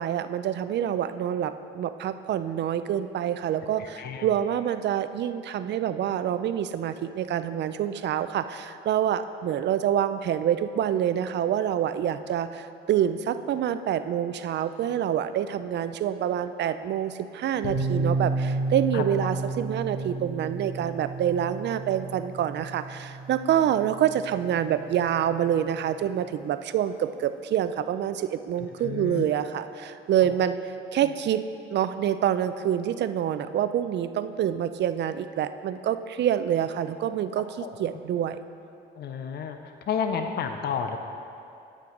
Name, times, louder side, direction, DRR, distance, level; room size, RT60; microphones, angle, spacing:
voice 1, 0.0-31.4 31.7-38.4, right 10 dB, 60° right, 11 dB, 0.4 m, -27 dB
voice 2, 4.0-4.3 18.9-19.0 28.8-29.2 37.6-37.7 39.0-39.6 39.9-41.0, left 7 dB, 55° left, 6 dB, 0.5 m, -30 dB
sound 1, 17.6-25.3, right 2 dB, 70° left, 1.3 m, -32 dB
9.2 x 8.4 x 3.9 m, 2.6 s
cardioid pair, 90°, 20 cm